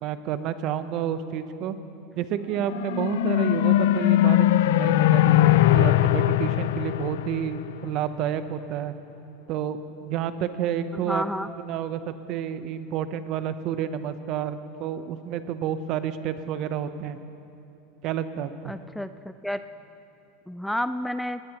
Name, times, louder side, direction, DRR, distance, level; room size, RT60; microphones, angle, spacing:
voice 1, 0.0-1.8 2.2-8.9 9.5-11.2 11.7-17.2 18.0-18.7, right 9 dB, 50° right, 11 dB, 0.8 m, -30 dB
sound 1, 2.6-8.1, left 14 dB, 75° left, 0.3 m, -21 dB
voice 2, 10.9-11.5 18.6-19.6 20.5-21.4, equal, ahead, 11 dB, 0.3 m, -30 dB
19.5 x 18.5 x 3.0 m, 2.8 s
supercardioid pair, 125°, 0 cm